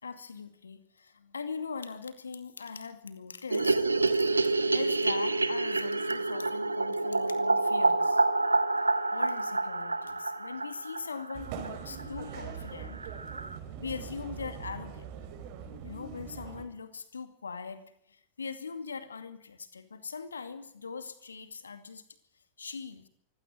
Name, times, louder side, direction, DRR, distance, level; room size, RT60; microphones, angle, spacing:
voice 1, 0.0-4.3 4.7-8.2 9.1-13.0 13.8-15.1 15.8-17.8 18.1-22.0 22.6-23.1, left 5 dB, 75° left, 10 dB, 2.3 m, -41 dB
sound 1, 3.5-11.7 12.0-12.1 12.3-12.4 12.7-12.8 13.0-13.6, right 3 dB, 80° right, 1.1 m, -28 dB
sound 2, 11.3-16.7, right 7 dB, 45° right, 4.7 m, -42 dB
24.0 x 16.5 x 9.2 m, 0.71 s
figure-of-eight pair, 90°, 0 cm